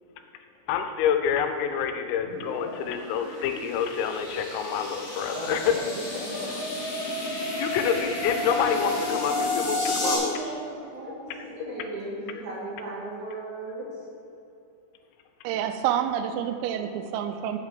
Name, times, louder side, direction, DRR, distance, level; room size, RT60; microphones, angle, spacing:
voice 1, 0.7-5.6 7.6-10.3 11.6-11.7, left 7 dB, 85° left, 7 dB, 3.1 m, -28 dB
sound 1, 2.2-10.2, left 2 dB, 50° left, 3.0 m, -31 dB
voice 2, 5.3-6.8 10.0-14.0, right 2 dB, 50° right, -7 dB, 2.7 m, -37 dB
voice 3, 15.4-17.6, right 9 dB, 85° right, 7 dB, 3.3 m, -28 dB
7.3 x 5.9 x 7.4 m, 2.7 s
omnidirectional pair, 5.8 m